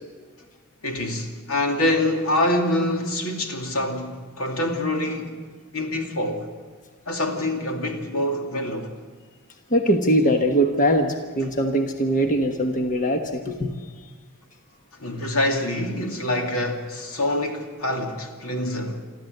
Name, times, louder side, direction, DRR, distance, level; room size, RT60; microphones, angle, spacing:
voice 1, 0.8-5.4 5.7-6.4 7.1-8.9 15.0-19.0, left 1 dB, 80° left, 2.6 m, -25 dB
voice 2, 9.7-13.7, equal, 35° left, 1.3 m, -21 dB
24.5 x 14.5 x 8.0 m
head